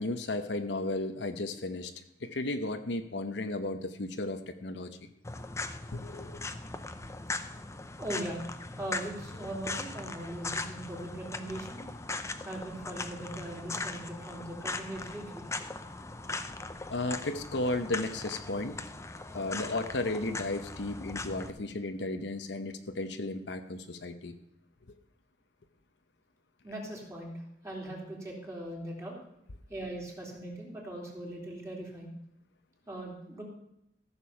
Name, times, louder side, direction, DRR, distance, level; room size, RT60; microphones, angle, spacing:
voice 1, 0.0-1.9 2.2-4.9 5.9-6.4 16.9-18.8 19.3-24.3, left 2 dB, 75° left, 8 dB, 0.9 m, -34 dB
sound 1, 5.2-21.5, left 3 dB, 15° left, 0.6 m, -39 dB
voice 2, 8.0-8.4 8.8-11.8 12.4-15.5 26.6-27.3 27.6-29.2 29.7-32.1 32.9-33.4, right 1 dB, 15° right, -3 dB, 3.3 m, -40 dB
14.5 x 6.9 x 5.7 m, 0.81 s
head